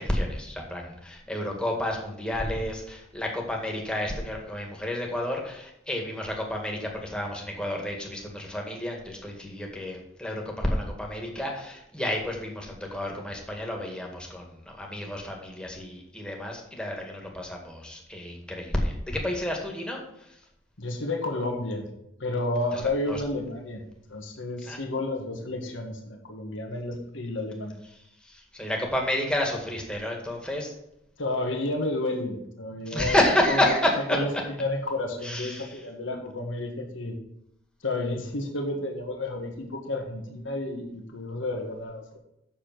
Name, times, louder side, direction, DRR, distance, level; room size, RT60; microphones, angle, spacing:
voice 1, 0.0-20.0 23.1-23.2 24.6-24.8 28.3-30.7 32.9-34.2 35.2-35.7, left 1 dB, 5° left, 0 dB, 1.8 m, -30 dB
voice 2, 20.8-21.8 22.2-23.8 24.1-27.7 31.2-33.2 33.4-33.8 34.1-37.1 37.8-42.2, left 2 dB, 80° left, 2 dB, 1.6 m, -31 dB
7.4 x 6.8 x 6.0 m, 0.81 s
head